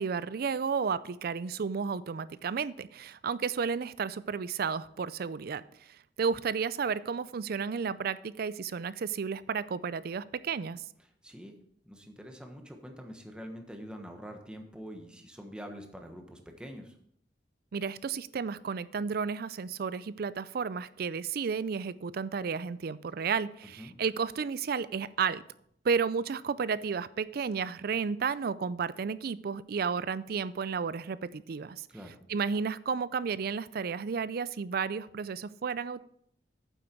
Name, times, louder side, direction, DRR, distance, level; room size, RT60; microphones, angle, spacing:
voice 1, 0.0-5.6 6.2-10.8 17.7-25.4 25.8-31.9 32.3-36.0, right 5 dB, 60° right, 17 dB, 0.4 m, -32 dB
voice 2, 11.2-11.6 11.8-17.0 23.8-24.0 31.9-32.2, equal, 5° right, 4 dB, 1.3 m, -45 dB
9.1 x 7.5 x 4.6 m, 0.69 s
head